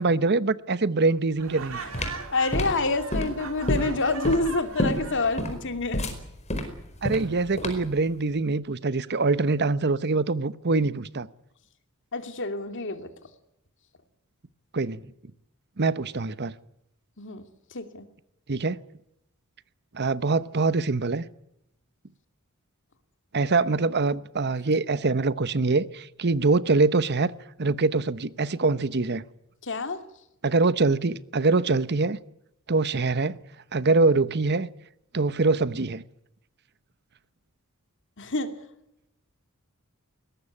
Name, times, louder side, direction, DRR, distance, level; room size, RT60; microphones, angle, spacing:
voice 1, 0.0-1.8 7.0-11.3 14.7-15.0 15.8-16.5 18.5-18.8 19.9-21.2 23.3-27.3 27.6-29.2 30.4-32.2 32.7-33.4 33.7-34.7 35.1-36.0, right 3 dB, 50° right, 1.0 m, -24 dB
Laughter, 1.4-5.4, right 6 dB, 65° right, 2.5 m, -40 dB
sound 1, 1.5-8.0, left 1 dB, 30° left, 4.7 m, -29 dB
voice 2, 2.3-6.1 12.1-13.0 17.2-17.4 17.7-18.0 29.7-30.0 38.2-38.5, left 3 dB, 60° left, 2.6 m, -27 dB
22.0 x 18.5 x 9.9 m
head